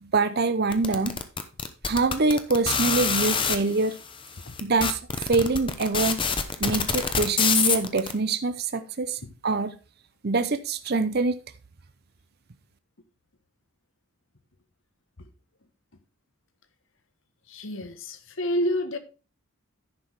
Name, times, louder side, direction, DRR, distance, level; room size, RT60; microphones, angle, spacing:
voice 1, 0.0-1.1 1.9-4.0 4.6-6.2 6.6-9.7 10.2-11.4, right 3 dB, 45° right, 0.6 m, -25 dB
sound 1, 0.7-3.6 4.2-4.3 4.6-8.1, left 6 dB, 25° left, 0.8 m, -25 dB
voice 2, 17.5-19.0, equal, 60° left, 1.2 m, -29 dB
10.5 x 6.2 x 4.6 m
head